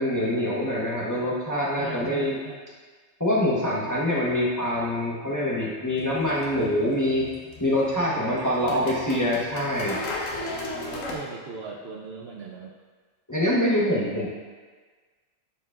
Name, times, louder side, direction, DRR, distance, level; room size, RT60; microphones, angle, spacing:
voice 1, 0.0-2.4 3.2-7.3 7.6-10.0 13.3-14.3, left 1 dB, 15° left, -6 dB, 0.8 m, -25 dB
voice 2, 1.7-2.6 8.0-9.2 9.6-9.7 10.3-12.7, right 4 dB, 60° right, 0 dB, 0.8 m, -40 dB
sound 1, 5.9-11.2, left 2 dB, 85° left, 1.4 m, -37 dB
11.0 x 4.6 x 2.4 m, 1.5 s
omnidirectional pair, 1.3 m